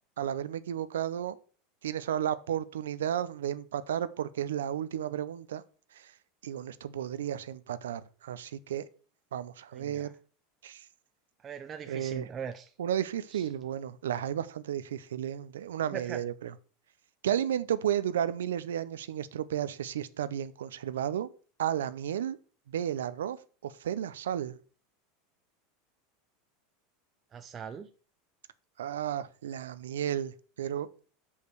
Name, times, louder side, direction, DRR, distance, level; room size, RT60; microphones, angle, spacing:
voice 1, 0.2-1.4 1.8-5.6 5.9-6.1 6.4-8.9 9.3-10.1 10.6-10.8 11.9-12.3 12.8-16.5 17.2-21.3 21.6-22.4 22.7-24.6 28.8-30.9, right 10 dB, 85° right, 0.6 m, -33 dB
voice 2, 9.7-10.1 11.4-12.7 13.3-13.4 15.9-16.2 27.3-27.9, right 7 dB, 35° right, 0.7 m, -40 dB
6.5 x 5.5 x 6.1 m
hypercardioid pair, 100°, 0 cm